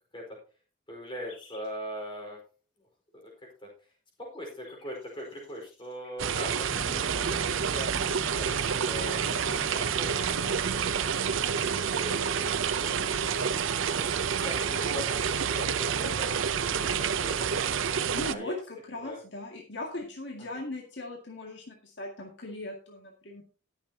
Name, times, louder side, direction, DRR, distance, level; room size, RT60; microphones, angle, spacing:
voice 1, 0.9-2.4 3.1-3.3 3.6-3.7 4.2-7.9 8.4-11.0 11.7-13.5 14.0-17.6 18.2-18.5 18.9-19.2, equal, 25° left, -1 dB, 4.5 m, -41 dB
sound 1, 1.2-1.7 3.9-4.0 4.2-6.5, left 4 dB, 80° left, 5.4 m, -57 dB
sound 2, 6.2-18.4, right 7 dB, 80° right, 0.6 m, -28 dB
sound 3, 6.7-17.4 17.7-18.0 18.4-18.5, left 2 dB, 5° left, 1.3 m, -48 dB
voice 2, 18.1-23.4, left 2 dB, 60° left, 0 dB, 2.1 m, -39 dB
18.5 x 7.2 x 2.8 m, 0.36 s
head